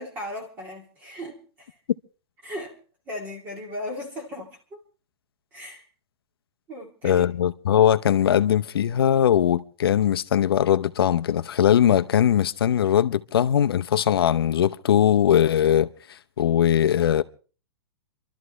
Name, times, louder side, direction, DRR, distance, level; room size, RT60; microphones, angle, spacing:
voice 1, 0.0-1.8 2.4-2.8 3.1-4.8 5.5-5.8 6.7-7.3, left 1 dB, 15° right, 2.2 m, -37 dB
voice 2, 7.0-17.2, left 10 dB, 65° left, 0.8 m, -20 dB
28.5 x 12.5 x 3.2 m
hypercardioid pair, 180°, 13 cm